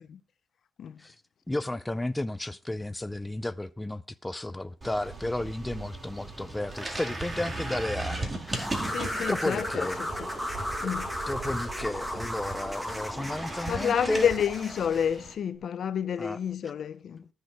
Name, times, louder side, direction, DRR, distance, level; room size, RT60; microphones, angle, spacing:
voice 1, 1.5-8.7 9.3-10.0 11.3-14.3 16.2-16.4, left 1 dB, 10° left, 0.4 m, -33 dB
sound 1, 4.8-15.3, right 2 dB, 25° right, 2.3 m, -38 dB
sound 2, 8.5-15.1, equal, 5° right, 1.8 m, -35 dB
voice 2, 8.9-10.3 10.8-11.1 13.7-17.2, left 8 dB, 60° left, 0.7 m, -29 dB
13.5 x 6.5 x 4.7 m
cardioid pair, 90°, 0 cm